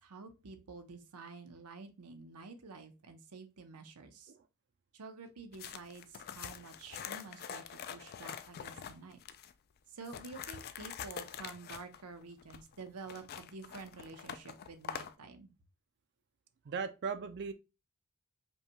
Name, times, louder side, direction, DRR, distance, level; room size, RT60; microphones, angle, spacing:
voice 1, 0.0-4.3 4.9-9.2 9.9-15.5, right 4 dB, 90° right, 0.8 m, -49 dB
sound 1, 5.5-9.5 10.0-15.1, left 8 dB, 45° left, 0.3 m, -45 dB
voice 2, 16.7-17.5, right 5 dB, 50° right, 0.4 m, -37 dB
5.3 x 2.3 x 2.9 m
head